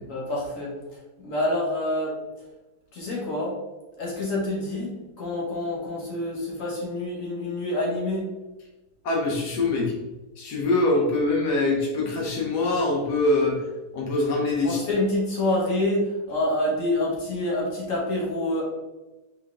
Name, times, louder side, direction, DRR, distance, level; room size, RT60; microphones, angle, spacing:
voice 1, 0.0-0.7 1.2-2.1 2.9-3.5 4.0-8.3 14.6-18.6, left 1 dB, 55° left, -4 dB, 1.6 m, -27 dB
voice 2, 9.0-9.9 10.4-13.6 13.9-14.8, left 2 dB, 75° left, -1 dB, 1.4 m, -23 dB
4.4 x 3.4 x 3.5 m, 1.1 s
omnidirectional pair, 1.8 m